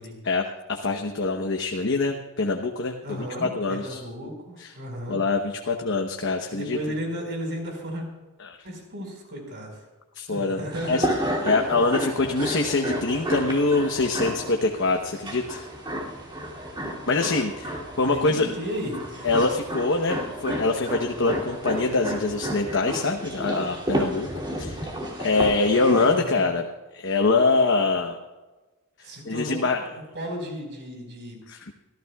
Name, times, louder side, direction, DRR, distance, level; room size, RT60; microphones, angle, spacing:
voice 1, 0.2-4.0 4.6-4.7 5.1-6.8 8.4-8.6 10.1-11.1 11.4-15.7 17.1-18.5 19.2-24.3 24.6-24.9 25.2-26.6 26.9-28.2 29.2-29.9 31.5-31.7, left 3 dB, 60° left, 3 dB, 1.0 m, -24 dB
voice 2, 3.0-5.2 6.5-8.1 8.6-9.9 10.3-11.0 17.1-17.2 18.1-19.0 26.1-26.4 29.0-29.7 29.9-31.4, equal, 55° right, 1 dB, 4.8 m, -34 dB
sound 1, 10.7-26.2, equal, 20° right, 2.7 m, -32 dB
26.0 x 14.5 x 2.4 m, 1.2 s
head